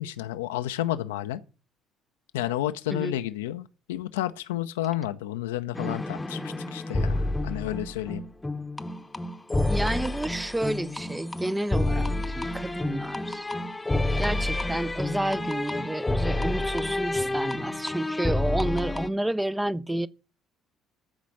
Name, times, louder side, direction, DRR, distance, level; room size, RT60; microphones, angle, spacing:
voice 1, 0.0-1.4 2.3-8.2, left 13 dB, 70° left, 0.7 m, -31 dB
sound 1, 5.7-19.1, left 2 dB, 15° left, 1.0 m, -29 dB
voice 2, 9.7-13.5 14.2-20.1, right 1 dB, 10° right, 0.6 m, -30 dB
14.0 x 5.1 x 7.9 m
figure-of-eight pair, 50°, 0 cm